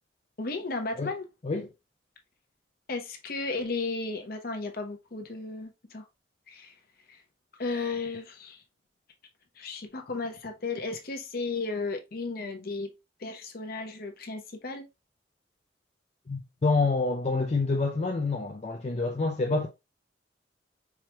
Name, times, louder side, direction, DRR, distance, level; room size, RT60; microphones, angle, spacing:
voice 1, 0.4-1.3 2.9-6.0 6.5-6.7 7.1-7.2 7.6-8.6 9.6-12.9 13.2-14.9, left 3 dB, 55° left, 0.8 m, -34 dB
voice 2, 16.3-19.7, left 3 dB, 40° left, 0.4 m, -27 dB
4.7 x 3.0 x 2.2 m
head